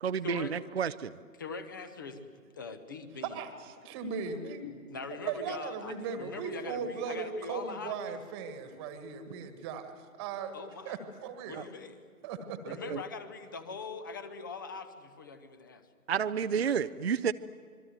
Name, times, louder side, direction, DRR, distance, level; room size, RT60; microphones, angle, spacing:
voice 1, 0.0-1.1 9.4-9.5 11.5-11.6 12.9-13.0 16.1-17.3, right 7 dB, 45° right, 12 dB, 0.6 m, -30 dB
voice 2, 1.4-2.2 2.5-3.4 4.6-8.1 10.5-11.0 11.5-12.0 12.6-15.9, left 4 dB, 15° left, 11 dB, 0.8 m, -42 dB
voice 3, 3.2-4.6 5.2-10.5 10.8-11.7 12.2-12.8, right 6 dB, 15° right, 9 dB, 1.6 m, -38 dB
26.0 x 23.0 x 7.8 m, 2.1 s
figure-of-eight pair, 140°, 46 cm